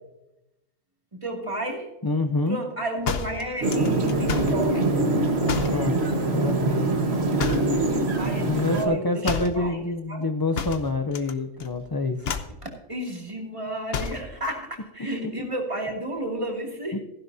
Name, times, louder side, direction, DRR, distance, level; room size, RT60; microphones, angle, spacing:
voice 1, 1.1-1.9 2.5-4.9 8.2-9.8 10.1-10.2 12.6-17.0, right 1 dB, 25° right, 0 dB, 2.5 m, -32 dB
voice 2, 2.0-2.6 5.7-6.0 6.3-6.9 8.4-12.2, left 2 dB, 30° left, 6 dB, 0.4 m, -26 dB
sound 1, 3.1-4.6 5.5-5.8 7.4-7.8 9.2-9.6 10.6-11.3 11.6-11.9 12.2-12.6 13.9-14.3, left 6 dB, 55° left, 1.0 m, -30 dB
sound 2, 3.6-8.8, right 2 dB, 55° right, 1.7 m, -24 dB
15.5 x 11.0 x 2.7 m, 0.93 s
omnidirectional pair, 1.3 m